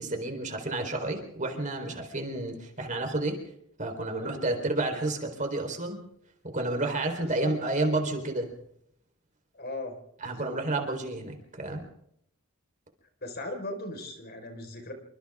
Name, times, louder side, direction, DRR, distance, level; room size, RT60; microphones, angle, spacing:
voice 1, 0.0-3.4 3.8-6.0 6.5-8.5 10.2-11.8, right 2 dB, 35° right, 4 dB, 4.1 m, -30 dB
voice 2, 4.1-4.7 7.1-7.5 9.5-10.0 10.2-10.6 13.2-14.9, left 1 dB, 45° left, 5 dB, 4.7 m, -38 dB
28.0 x 25.5 x 3.7 m, 0.73 s
head